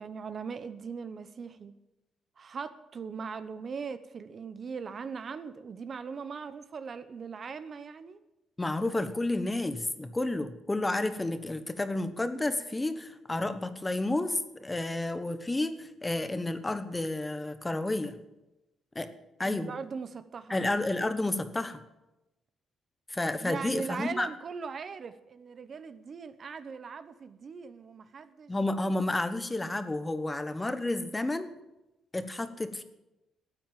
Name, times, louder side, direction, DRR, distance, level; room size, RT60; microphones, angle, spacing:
voice 1, 0.0-1.7 2.4-8.2 19.4-20.7 23.4-28.5, right 5 dB, 45° right, 12 dB, 0.9 m, -40 dB
voice 2, 8.6-18.2 18.9-19.1 19.4-19.7 20.5-21.8 23.1-24.3 28.5-31.5 32.1-32.8, left 2 dB, 15° left, 11 dB, 1.1 m, -31 dB
13.5 x 8.8 x 9.1 m, 0.97 s
cardioid pair, 110°, 0 cm